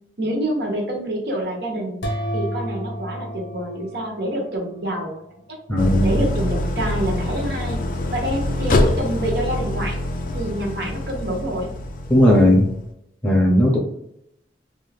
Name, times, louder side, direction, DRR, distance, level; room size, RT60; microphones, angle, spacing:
voice 1, 0.2-2.0 2.3-5.6 6.0-7.8 8.1-10.0 10.3-11.7, right 1 dB, 60° right, 1 dB, 0.8 m, -27 dB
sound 1, 2.0-4.8, equal, 75° left, 0.7 m, -30 dB
voice 2, 5.7-6.2 12.1-12.6 13.2-13.8, left 1 dB, 10° left, -2 dB, 0.7 m, -16 dB
Idling, 5.8-12.8, left 1 dB, 50° left, 0.4 m, -25 dB
2.6 x 2.3 x 3.2 m, 0.77 s
head